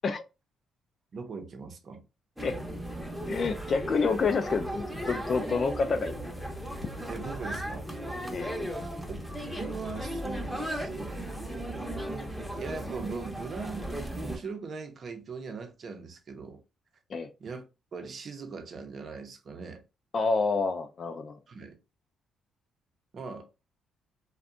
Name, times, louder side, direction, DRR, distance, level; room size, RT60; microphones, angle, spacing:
voice 1, 1.1-2.0 7.1-7.9 9.1-9.2 9.5-11.9 12.5-13.9 14.2-16.6 17.4-19.8 21.5-21.8 23.1-23.5, right 4 dB, 50° right, 0.6 m, -40 dB
sound 1, 2.4-14.4, equal, ahead, 0.7 m, -36 dB
voice 2, 3.3-6.2 8.3-8.6 17.1-17.3 20.1-21.4, left 4 dB, 45° left, 0.3 m, -28 dB
2.6 x 2.2 x 2.4 m
cardioid pair, 90°, 0 cm